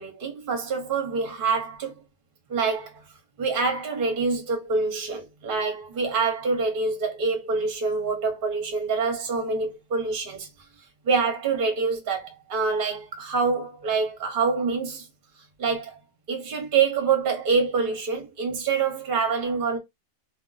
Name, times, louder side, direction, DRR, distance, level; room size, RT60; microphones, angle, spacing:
voice 1, 0.0-1.9 2.5-3.0 3.4-10.5 11.0-15.1 15.6-16.0 16.3-19.8, right 4 dB, 45° right, 0.8 m, -26 dB
2.4 x 2.3 x 3.8 m
omnidirectional pair, 1.5 m